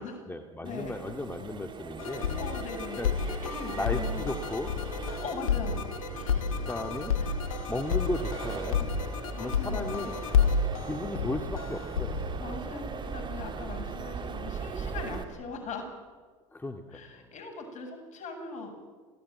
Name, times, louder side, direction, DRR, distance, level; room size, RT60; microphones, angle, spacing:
voice 1, 0.0-2.3 3.0-3.1 3.8-4.7 6.6-7.2 7.7-8.9 9.4-10.2 10.8-12.3 16.5-17.3, left 2 dB, 10° left, 5 dB, 2.1 m, -35 dB
voice 2, 0.6-1.0 2.4-4.3 5.2-5.9 6.1-6.6 9.3-10.0 12.2-15.9 16.9-18.9, left 4 dB, 45° left, 4 dB, 7.8 m, -40 dB
Accelerating revving vroom, 0.6-15.2, right 5 dB, 30° right, 3.3 m, -39 dB
sound 1, 2.0-12.4, left 6 dB, 85° left, 1.9 m, -31 dB
27.0 x 16.5 x 9.6 m, 1.5 s
hypercardioid pair, 85°, 17 cm